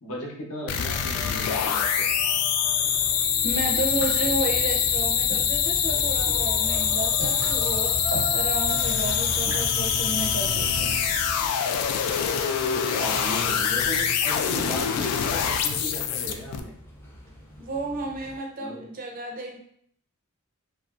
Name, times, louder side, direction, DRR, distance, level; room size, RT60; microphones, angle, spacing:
voice 1, 0.0-2.1 13.0-16.7 18.6-18.8, equal, 65° left, -1 dB, 0.8 m, -36 dB
sound 1, 0.7-16.6, left 8 dB, 85° left, 0.3 m, -25 dB
sound 2, 0.9-18.4, equal, 10° left, 0.4 m, -41 dB
voice 2, 3.4-8.0 8.3-10.9 17.6-19.6, right 2 dB, 40° right, 1 dB, 0.5 m, -32 dB
sound 3, 3.4-11.5, equal, 90° right, 1.0 m, -37 dB
2.9 x 2.5 x 2.4 m, 0.62 s
head